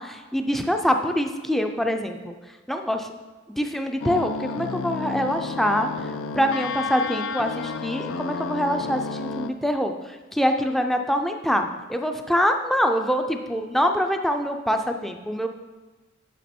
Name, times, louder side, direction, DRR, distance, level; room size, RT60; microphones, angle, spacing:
voice 1, 0.0-2.3 2.7-3.1 3.6-5.9 6.3-15.5, equal, ahead, 5 dB, 0.5 m, -24 dB
sound 1, 4.0-9.5, left 4 dB, 70° left, 0.5 m, -31 dB
9.2 x 6.0 x 4.4 m, 1.3 s
head